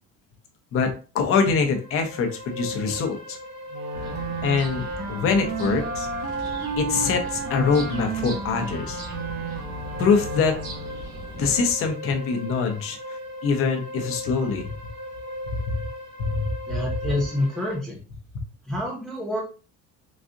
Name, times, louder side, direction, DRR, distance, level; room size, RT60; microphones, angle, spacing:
voice 1, 0.7-3.4 4.4-6.1 6.8-9.0 10.0-10.6 11.3-13.0 13.4-14.7 15.5-15.8 16.2-16.5, left 5 dB, 45° left, 5 dB, 0.8 m, -24 dB
sound 1, 1.4-17.8, left 1 dB, 60° right, 1.4 m, -38 dB
Wind instrument woodwind instrument, 3.7-11.1, right 4 dB, 35° right, 0.7 m, -32 dB
sound 2, 3.9-11.7, equal, 80° right, 1.3 m, -39 dB
voice 2, 16.7-18.0 18.6-19.4, left 1 dB, ahead, -2 dB, 0.6 m, -27 dB
4.0 x 2.4 x 2.5 m, 0.35 s
cardioid pair, 135°, 31 cm